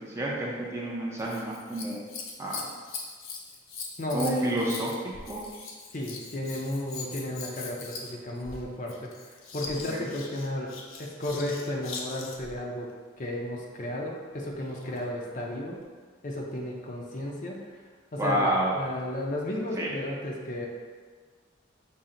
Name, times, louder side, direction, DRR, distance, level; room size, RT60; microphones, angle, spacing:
voice 1, 0.1-2.0 2.4-2.7 4.1-4.9 5.2-5.4 9.9-10.0 18.2-18.8 19.7-19.9, right 1 dB, 15° right, -4 dB, 0.5 m, -29 dB
Scissors, 1.2-12.6 14.5-15.1 15.8-15.9, left 4 dB, 85° left, 0.6 m, -41 dB
voice 2, 4.0-4.5 5.9-9.1 9.5-10.7 11.0-12.9 13.2-15.8 16.2-17.6 18.1-20.7, left 1 dB, 40° left, -1 dB, 0.5 m, -33 dB
5.6 x 2.0 x 3.7 m, 1.5 s
head